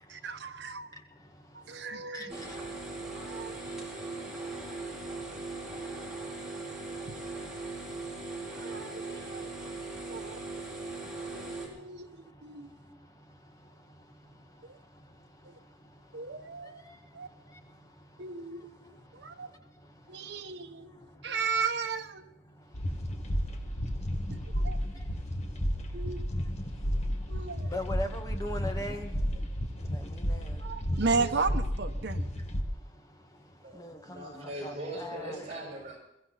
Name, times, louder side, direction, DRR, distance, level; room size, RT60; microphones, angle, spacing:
voice 1, 0.1-0.9 1.5-2.3 3.2-3.6 7.1-7.2 8.5-9.5 10.1-10.9 11.3-12.1 12.4-12.7 14.7-14.8 15.4-15.5 16.1-16.8 17.1-17.3 18.2-18.7 19.1-19.5 20.1-20.9 21.2-22.2 24.3-24.8 25.9-26.2 27.3-27.7 30.6-32.3, right 4 dB, 65° right, 1.2 m, -35 dB
sound 1, 2.3-11.7, right 3 dB, 5° right, 4.9 m, -39 dB
sound 2, 22.7-32.6, equal, 35° left, 1.6 m, -32 dB
voice 2, 27.7-29.1 29.9-30.6 33.8-35.4, left 1 dB, 20° left, 1.8 m, -38 dB
voice 3, 33.6-36.0, right 1 dB, 35° right, 6.5 m, -40 dB
22.5 x 15.0 x 4.2 m
head